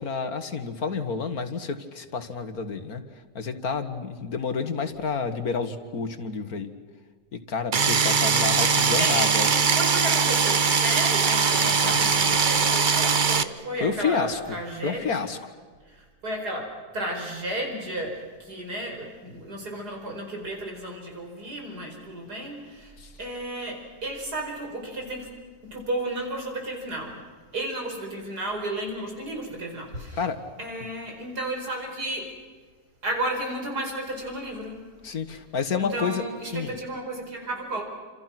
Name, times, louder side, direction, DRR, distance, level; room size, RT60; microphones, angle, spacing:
voice 1, 0.0-3.0 3.4-6.7 7.5-9.5 11.5-12.4 13.8-14.4 14.8-15.4 23.0-23.1 30.2-30.4 35.0-36.2 36.5-36.7, left 5 dB, 65° left, 8 dB, 2.2 m, -29 dB
sound 1, 7.7-13.4, right 5 dB, 40° right, 0.8 m, -21 dB
voice 2, 8.9-15.3 15.9-22.9 23.2-25.3 25.6-27.2 27.5-30.2 30.6-32.3 33.0-34.9 35.8-37.8, right 1 dB, 80° right, 2 dB, 5.5 m, -33 dB
29.0 x 27.5 x 6.1 m, 1.5 s
omnidirectional pair, 1.7 m